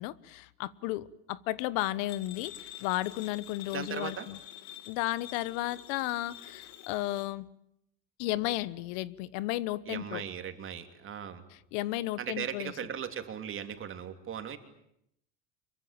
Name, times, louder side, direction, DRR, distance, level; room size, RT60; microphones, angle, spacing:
voice 1, 0.0-4.4 4.9-7.5 8.2-10.2 11.7-12.7, left 16 dB, 85° left, 1.2 m, -33 dB
sound 1, 2.1-7.3, left 13 dB, 55° left, 2.2 m, -48 dB
voice 2, 3.7-4.3 9.9-11.4 12.2-14.6, right 8 dB, 40° right, 3.1 m, -38 dB
25.5 x 23.5 x 9.0 m
cardioid pair, 130°, 33 cm